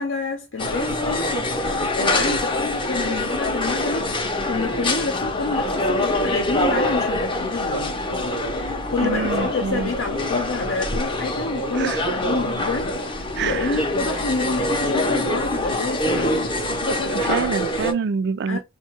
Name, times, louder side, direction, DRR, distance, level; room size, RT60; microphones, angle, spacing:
voice 1, 0.0-16.4 18.5-18.6, left 3 dB, 85° left, 0.7 m, -28 dB
sound 1, 0.6-17.9, left 1 dB, 25° left, 0.5 m, -24 dB
voice 2, 9.0-9.9 11.7-12.0 13.3-13.7 17.1-18.6, right 5 dB, 55° right, 0.3 m, -26 dB
4.6 x 2.2 x 2.9 m
head